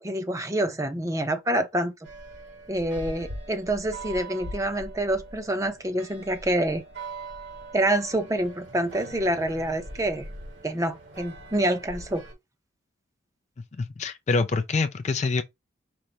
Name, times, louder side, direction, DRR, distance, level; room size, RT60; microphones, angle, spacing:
voice 1, 0.0-1.9 2.7-6.8 7.7-10.3 10.6-12.2, right 1 dB, 15° right, 0.7 m, -27 dB
sound 1, 2.0-12.3, right 2 dB, 70° right, 1.8 m, -41 dB
voice 2, 13.8-15.4, left 4 dB, 35° left, 0.4 m, -25 dB
5.2 x 2.1 x 4.3 m
head